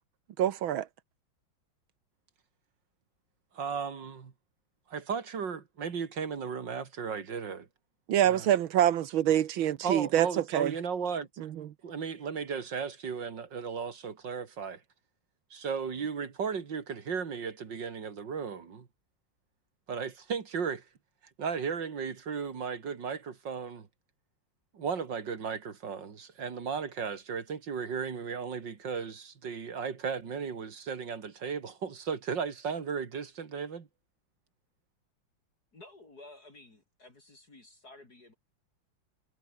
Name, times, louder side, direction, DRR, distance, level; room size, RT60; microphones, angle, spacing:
voice 1, 0.4-0.9 8.1-10.7 11.4-11.7, right 11 dB, 75° right, 1.9 m, -26 dB
voice 2, 3.5-4.3 4.9-7.7 8.2-8.5 9.8-11.3 11.8-14.8 15.5-18.9 19.9-20.8 21.4-23.9 24.7-33.9, right 6 dB, 60° right, 2.8 m, -35 dB
voice 3, 35.7-38.3, left 2 dB, 50° left, 5.1 m, -53 dB
omnidirectional pair, 2.2 m